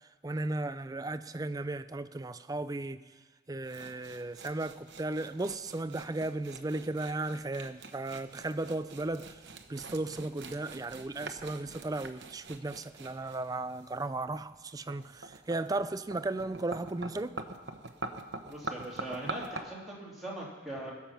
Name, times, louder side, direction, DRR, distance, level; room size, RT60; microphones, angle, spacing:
voice 1, 0.2-3.0 3.5-9.4 9.7-17.4, right 2 dB, 20° right, 0.4 m, -35 dB
sound 1, 3.6-19.6, right 3 dB, 55° right, 1.0 m, -45 dB
voice 2, 18.5-20.9, right 1 dB, ahead, 3.0 m, -40 dB
21.0 x 7.2 x 5.9 m
head